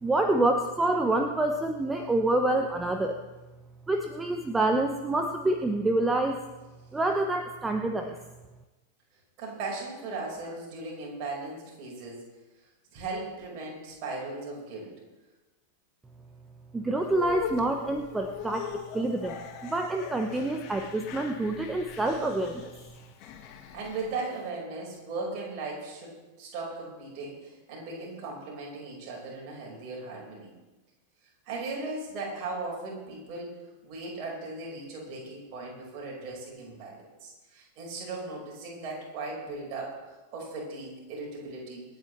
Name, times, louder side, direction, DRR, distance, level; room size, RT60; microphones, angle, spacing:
voice 1, 0.0-3.2 3.9-6.4 6.9-8.2 16.7-22.7, right 2 dB, 10° right, 5 dB, 0.9 m, -27 dB
voice 2, 9.4-12.2 12.9-14.9 23.7-30.5 31.5-33.6 33.8-41.8, right 3 dB, 40° right, -2 dB, 5.2 m, -37 dB
sound 1, 17.0-24.4, left 8 dB, 40° left, 1.7 m, -41 dB
26.5 x 9.0 x 3.3 m, 1.1 s
figure-of-eight pair, 90°, 0 cm